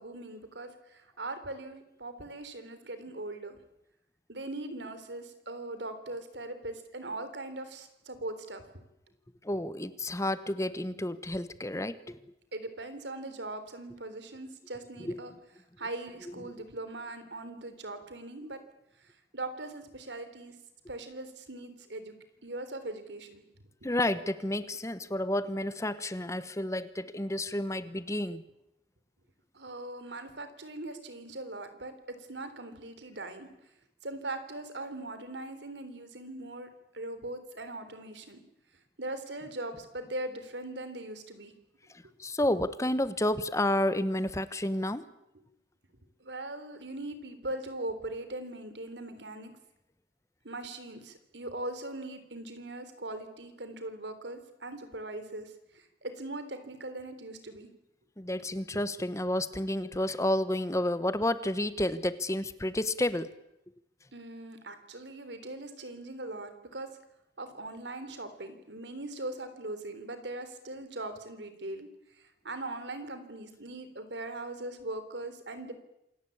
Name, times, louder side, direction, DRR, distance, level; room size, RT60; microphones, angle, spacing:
voice 1, 0.0-3.6 4.3-8.7 12.5-15.3 15.8-18.6 19.3-20.6 20.9-22.1 22.4-23.4 29.5-33.5 34.0-36.7 36.9-38.4 39.0-41.5 46.2-49.5 50.4-57.7 64.1-66.9 67.4-71.9 72.2-75.7, right 2 dB, 80° right, 10 dB, 3.5 m, -40 dB
voice 2, 9.4-12.2 15.0-15.2 16.4-16.5 23.8-28.4 41.9-45.0 58.2-63.3, left 1 dB, 15° left, 14 dB, 1.0 m, -30 dB
27.5 x 17.5 x 8.7 m, 0.85 s
head